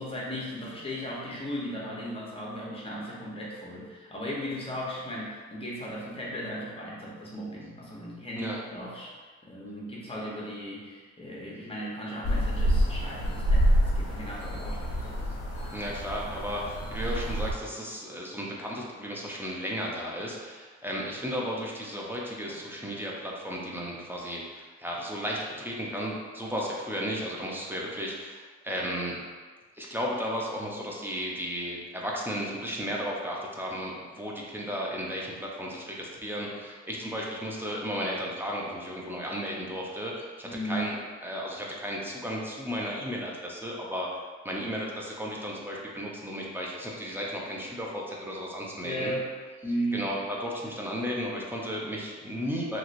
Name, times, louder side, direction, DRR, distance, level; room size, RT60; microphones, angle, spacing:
voice 1, 0.0-9.1 9.4-15.2 22.5-22.6 40.4-40.9 48.8-49.3 49.6-50.1, equal, 20° left, -5 dB, 0.9 m, -36 dB
sound 1, 12.2-17.5, equal, 50° left, 0.9 m, -27 dB
voice 2, 15.7-29.2 29.8-41.0 41.2-44.1 44.4-49.1 49.9-52.8, equal, 5° right, -3 dB, 0.5 m, -34 dB
2.9 x 2.8 x 2.6 m, 1.5 s
cardioid pair, 90°, 30 cm